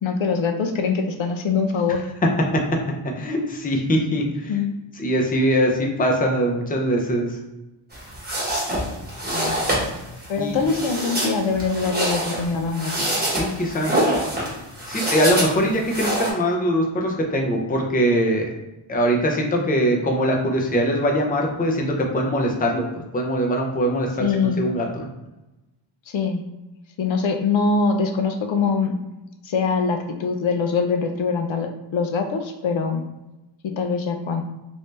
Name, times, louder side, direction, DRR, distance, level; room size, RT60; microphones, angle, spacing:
voice 1, 0.0-2.1 4.5-4.7 9.3-9.5 10.3-12.9 24.2-24.6 26.1-26.4 27.0-29.0 29.4-33.0 33.6-34.4, left 5 dB, 70° left, 5 dB, 0.5 m, -23 dB
voice 2, 2.2-4.5 5.0-7.4 10.4-10.6 13.2-13.9 14.9-18.5 18.9-24.3 24.6-25.1, equal, 20° left, 1 dB, 0.5 m, -22 dB
sound 1, 7.9-16.3, right 1 dB, 20° right, 1.0 m, -26 dB
3.2 x 2.6 x 3.2 m, 1.0 s
wide cardioid pair, 155°, 49 cm